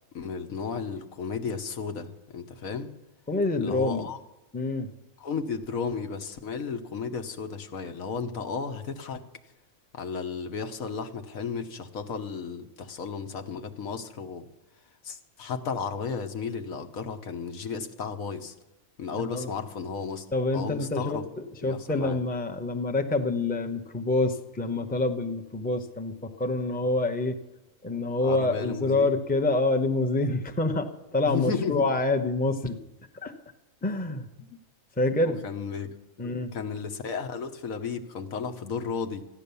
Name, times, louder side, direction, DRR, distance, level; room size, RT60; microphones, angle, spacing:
voice 1, 0.1-2.9 3.6-4.2 5.2-9.2 9.9-14.5 15.0-18.5 19.0-20.3 20.5-21.3 21.6-22.2 28.2-29.2 31.3-31.9 35.2-39.2, left 5 dB, 80° left, 6 dB, 1.5 m, -34 dB
voice 2, 3.3-4.1 4.5-4.9 19.2-19.5 20.3-27.4 27.8-32.8 33.2-33.3 33.8-34.3 35.0-35.4 36.2-36.5, left 2 dB, 10° left, 6 dB, 0.7 m, -27 dB
14.5 x 10.5 x 6.9 m, 1.0 s
omnidirectional pair, 1.5 m